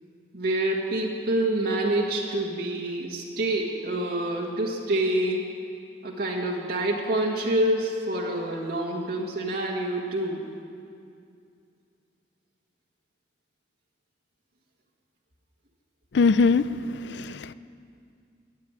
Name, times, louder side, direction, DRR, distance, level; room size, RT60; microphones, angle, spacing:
voice 1, 0.3-5.4 6.0-10.5, right 1 dB, 60° right, -2 dB, 1.8 m, -27 dB
voice 2, 16.1-16.6 17.0-17.5, left 4 dB, 70° left, 15 dB, 0.5 m, -21 dB
21.0 x 7.5 x 9.0 m, 2.3 s
head